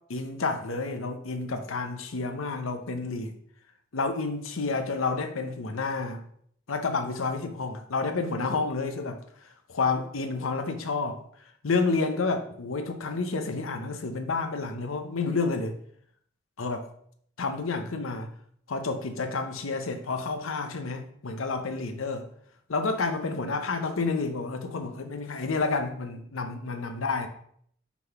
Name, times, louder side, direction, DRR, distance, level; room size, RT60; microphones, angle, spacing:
voice 1, 0.1-3.3 3.9-6.2 6.7-9.2 9.7-11.2 11.6-15.8 16.6-16.9 17.4-18.3 18.7-22.2 22.7-27.3, left 4 dB, 90° left, 7 dB, 0.8 m, -30 dB
6.0 x 3.8 x 5.8 m, 0.65 s
head